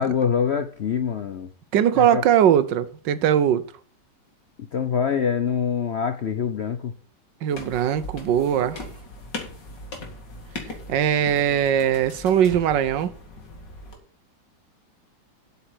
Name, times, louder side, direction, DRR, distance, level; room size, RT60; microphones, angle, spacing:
voice 1, 0.0-1.5 2.0-2.3 4.6-6.9, left 7 dB, 60° left, 0.7 m, -25 dB
voice 2, 1.7-3.6 7.4-8.8 10.9-13.1, right 9 dB, 85° right, 1.5 m, -20 dB
sound 1, 7.5-14.0, left 2 dB, 80° left, 2.7 m, -39 dB
8.1 x 5.7 x 7.7 m
omnidirectional pair, 1.9 m